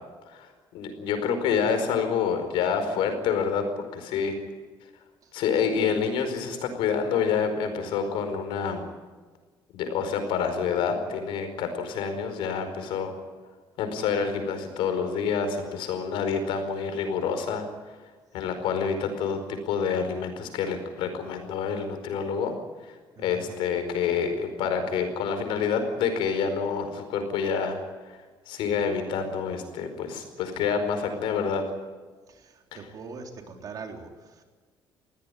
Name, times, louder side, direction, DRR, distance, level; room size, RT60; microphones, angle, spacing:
voice 1, 0.7-4.3 5.3-8.9 9.7-13.1 13.8-17.7 18.3-22.6 22.8-23.0 23.2-27.8 28.1-31.6 32.7-32.8, left 6 dB, 90° left, 7 dB, 4.7 m, -27 dB
voice 2, 23.2-23.6 32.3-34.4, right 4 dB, 45° right, 3 dB, 3.7 m, -42 dB
21.0 x 16.5 x 10.0 m, 1.4 s
cardioid pair, 135°, 8 cm